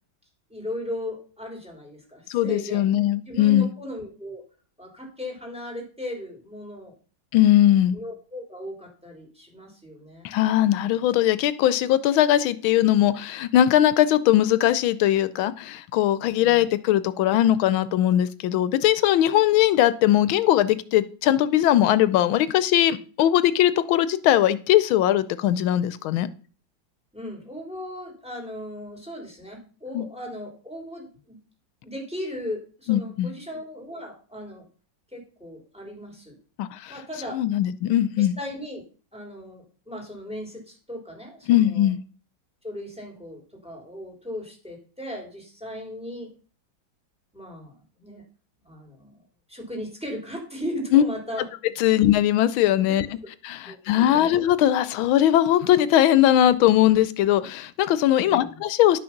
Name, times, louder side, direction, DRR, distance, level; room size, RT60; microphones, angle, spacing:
voice 1, 0.5-3.0 3.3-4.4 4.8-7.0 7.9-10.3 16.2-16.7 27.1-31.4 31.8-34.7 35.1-36.4 36.9-37.4 38.2-38.8 39.1-41.9 42.6-46.3 47.3-48.2 48.6-51.5 51.9-52.0 52.9-53.0 53.7-53.8 54.0-54.3 58.2-58.6, left 1 dB, 5° right, 0 dB, 3.3 m, -37 dB
voice 2, 2.3-3.7 7.3-8.0 10.2-26.3 29.9-30.1 32.9-33.3 36.6-36.9 37.3-38.3 41.5-42.0 50.9-51.0 51.8-53.1 53.4-59.0, left 12 dB, 85° left, 14 dB, 1.5 m, -20 dB
11.5 x 6.3 x 5.8 m, 0.39 s
omnidirectional pair, 2.2 m